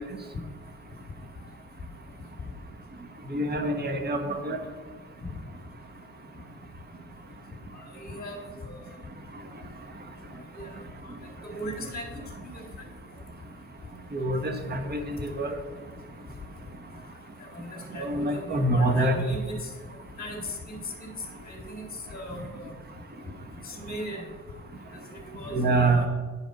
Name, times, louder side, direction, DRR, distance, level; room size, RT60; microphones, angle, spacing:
voice 1, 3.3-4.6 14.1-15.6 18.0-19.2 25.5-26.1, right 2 dB, 35° right, 5 dB, 1.3 m, -26 dB
voice 2, 7.7-9.1 10.3-11.2 11.4-12.9 15.2-15.3 16.9-17.1 17.4-22.8 23.6-24.2 24.9-26.1, left 1 dB, 30° left, 0 dB, 2.7 m, -39 dB
10.5 x 5.1 x 5.3 m, 1.4 s
cardioid pair, 90°, 30 cm